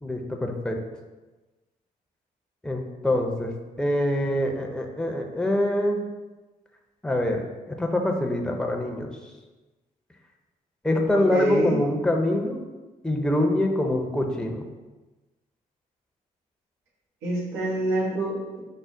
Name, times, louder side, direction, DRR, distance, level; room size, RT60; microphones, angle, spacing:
voice 1, 0.0-0.8 2.6-6.0 7.0-7.4 7.7-9.1 10.8-12.6 13.0-14.6, left 1 dB, 5° left, 1 dB, 0.6 m, -25 dB
voice 2, 11.1-11.8 17.2-18.6, right 1 dB, 85° right, -7 dB, 1.2 m, -26 dB
4.5 x 2.1 x 3.7 m, 1.2 s
hypercardioid pair, 40°, 19 cm